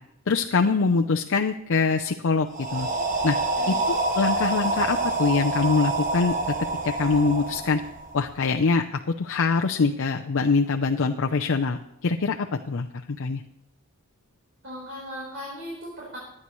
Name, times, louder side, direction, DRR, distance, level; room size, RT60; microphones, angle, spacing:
voice 1, 0.3-2.9 3.2-3.4 3.7-6.5 6.8-7.8 8.1-13.4, left 4 dB, 60° left, 4 dB, 0.6 m, -24 dB
sound 1, 2.5-8.4, right 2 dB, 40° right, 1.3 m, -27 dB
voice 2, 14.6-16.2, equal, 60° right, -5 dB, 4.3 m, -37 dB
23.5 x 9.8 x 3.1 m, 0.85 s
head